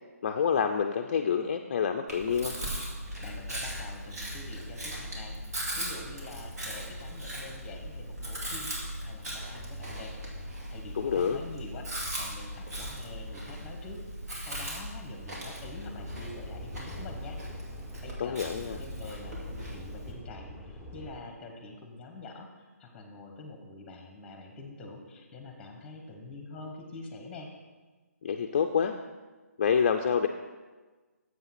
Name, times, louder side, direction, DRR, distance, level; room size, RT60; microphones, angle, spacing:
voice 1, 0.2-2.5 10.9-11.4 18.2-18.8 28.2-28.9 29.6-30.3, left 7 dB, 35° left, 5 dB, 0.4 m, -27 dB
Chewing mastication, 2.1-20.1, equal, 70° right, 2.6 m, -38 dB
voice 2, 3.2-5.3 5.8-8.7 9.0-10.1 10.7-14.0 14.4-17.4 18.0-27.5, left 2 dB, 10° left, 3 dB, 1.0 m, -46 dB
sound 1, 15.8-21.2, left 1 dB, 5° right, 0.6 m, -45 dB
7.5 x 5.5 x 5.8 m, 1.3 s
hypercardioid pair, 160°, 9 cm